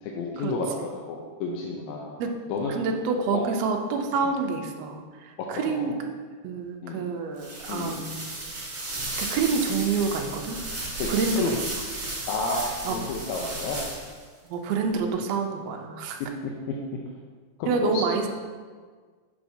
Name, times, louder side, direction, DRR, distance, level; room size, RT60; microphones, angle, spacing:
voice 1, 0.0-2.2 2.5-2.7 3.3-3.5 4.2-4.3 5.4-5.5 5.7-5.9 6.8-7.0 7.7-8.0 11.0-11.1 11.4-11.5 12.3-13.8 16.4-16.8 17.6-18.0, left 3 dB, 75° left, -2 dB, 1.9 m, -31 dB
voice 2, 2.7-5.9 6.4-8.3 9.2-10.6 11.1-11.6 12.8-12.9 14.4-16.2 17.7-18.3, right 5 dB, 85° right, 3 dB, 1.4 m, -27 dB
sound 1, 7.4-14.2, right 2 dB, 55° right, 0.8 m, -34 dB
6.7 x 6.3 x 2.7 m, 1.5 s
omnidirectional pair, 3.6 m